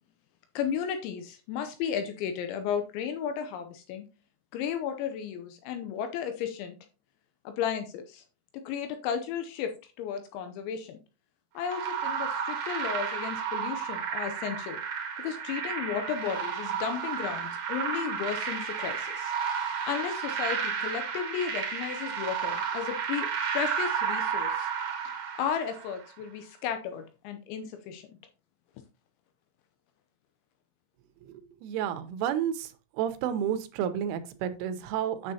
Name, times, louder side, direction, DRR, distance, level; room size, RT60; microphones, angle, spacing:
voice 1, 0.6-4.1 4.5-6.8 7.5-8.2 8.5-11.0 11.5-14.8 15.2-19.3 19.8-23.3 23.5-24.7 25.4-28.1, left 8 dB, 80° left, 7 dB, 2.7 m, -34 dB
sound 1, 11.6-26.0, right 7 dB, 60° right, 1.9 m, -32 dB
voice 2, 31.3-32.7 33.0-35.3, right 9 dB, 80° right, 10 dB, 3.2 m, -31 dB
8.6 x 7.0 x 2.8 m, 0.32 s
omnidirectional pair, 5.8 m